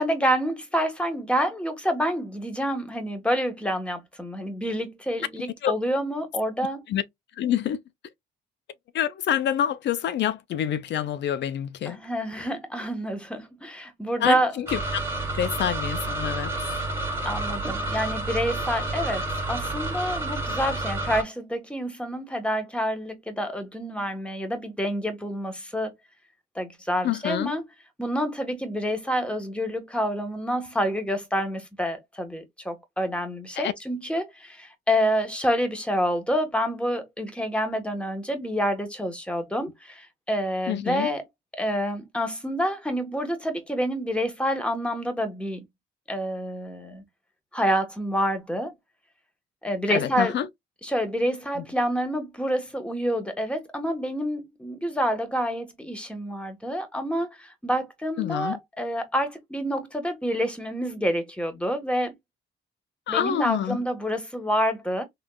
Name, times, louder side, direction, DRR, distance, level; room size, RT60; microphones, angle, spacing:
voice 1, 0.0-6.8 11.8-14.5 17.2-25.9 26.5-27.7 28.0-41.2 41.5-45.6 46.1-47.0 47.5-48.7 49.6-50.3 50.8-62.1 63.1-65.0, equal, 5° left, 1.1 m, -28 dB
voice 2, 7.4-7.8 8.9-12.0 14.2-14.8 15.3-16.5 27.0-27.5 33.6-33.7 40.7-41.1 49.9-50.5 51.6-51.7 58.2-58.6 63.1-63.8, left 10 dB, 65° left, 0.5 m, -27 dB
sound 1, 14.7-21.2, right 2 dB, 10° right, 1.4 m, -29 dB
3.6 x 2.4 x 2.2 m
cardioid pair, 90°, 20 cm